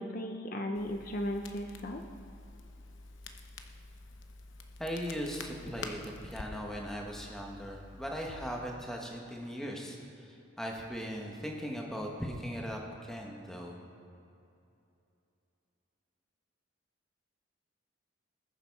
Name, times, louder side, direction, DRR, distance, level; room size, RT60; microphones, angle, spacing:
voice 1, 0.0-2.0, equal, 45° left, 4 dB, 0.6 m, -36 dB
Crackle, 0.7-8.7, left 3 dB, 70° left, 0.9 m, -48 dB
voice 2, 4.8-13.8, equal, ahead, 0 dB, 1.2 m, -39 dB
20.0 x 7.0 x 4.7 m, 2.7 s
head